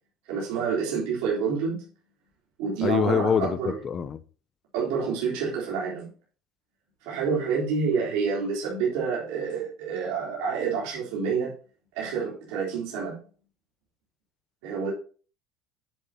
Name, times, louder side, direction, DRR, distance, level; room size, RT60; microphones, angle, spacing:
voice 1, 0.3-1.9 2.6-3.8 4.7-6.1 7.0-11.5 12.0-13.2 14.6-14.9, right 5 dB, 70° right, 3.6 m, -28 dB
voice 2, 2.8-4.2, left 7 dB, 25° left, 0.5 m, -25 dB
11.0 x 7.2 x 2.9 m
cardioid pair, 175°, 0 cm